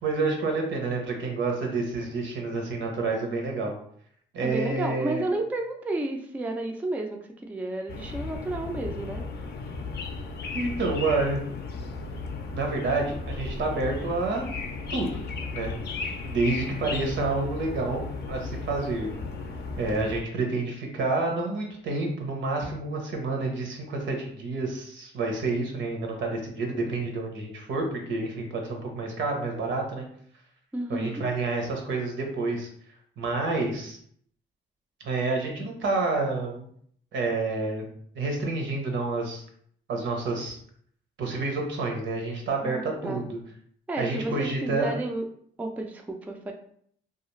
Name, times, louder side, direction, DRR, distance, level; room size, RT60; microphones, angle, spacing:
voice 1, 0.0-3.7 4.3-5.3 10.5-11.4 12.5-14.4 14.9-15.2 15.5-15.7 16.2-19.1 19.8-30.1 30.9-32.7 33.2-34.0 35.0-36.7 37.1-37.9 38.1-39.4 39.9-40.6 41.2-43.4 44.0-44.9, right 3 dB, 70° right, 2 dB, 0.8 m, -29 dB
voice 2, 4.4-9.2 30.7-31.2 42.6-43.2 43.9-45.3 45.6-46.5, right 2 dB, 10° right, 2 dB, 0.3 m, -31 dB
sound 1, 7.9-20.2, left 3 dB, 55° left, 0.5 m, -35 dB
2.4 x 2.3 x 3.1 m, 0.63 s
cardioid pair, 90°, 20 cm